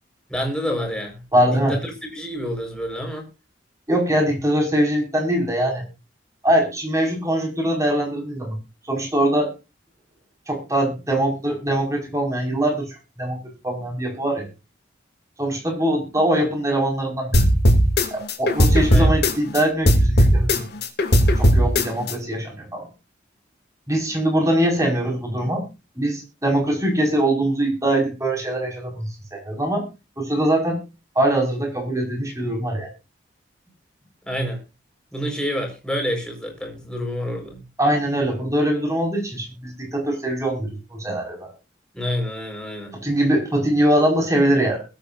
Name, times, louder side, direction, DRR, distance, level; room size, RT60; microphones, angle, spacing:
voice 1, 0.3-3.3 18.9-19.1 34.3-34.6 35.1-37.6 41.9-43.0, equal, 5° left, 4.7 m, -28 dB
voice 2, 1.3-1.8 3.9-5.8 6.4-8.6 8.9-9.5 10.5-14.5 15.4-17.5 18.1-20.7 21.4-22.9 23.9-25.6 26.0-29.9 30.2-30.8 31.2-32.9 37.8-41.5 42.9-44.8, right 1 dB, 15° right, 5.4 m, -22 dB
sound 1, 17.3-19.6 19.9-22.1, equal, 55° left, 2.9 m, -16 dB
21.5 x 8.9 x 2.6 m
head